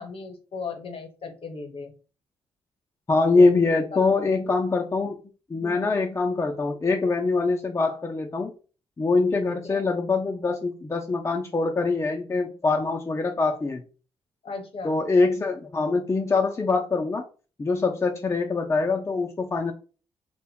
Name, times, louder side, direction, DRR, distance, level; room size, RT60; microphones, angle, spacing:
voice 1, 0.0-1.9 3.4-3.5 3.9-4.1 5.5-5.9 9.4-9.8 14.4-15.0, left 4 dB, 50° left, 4 dB, 0.9 m, -37 dB
voice 2, 3.1-5.2 5.5-8.5 9.0-13.8 14.8-17.2 17.6-19.7, left 3 dB, 25° left, 1 dB, 0.5 m, -23 dB
2.2 x 2.0 x 3.5 m, 0.36 s
hypercardioid pair, 45°, 12 cm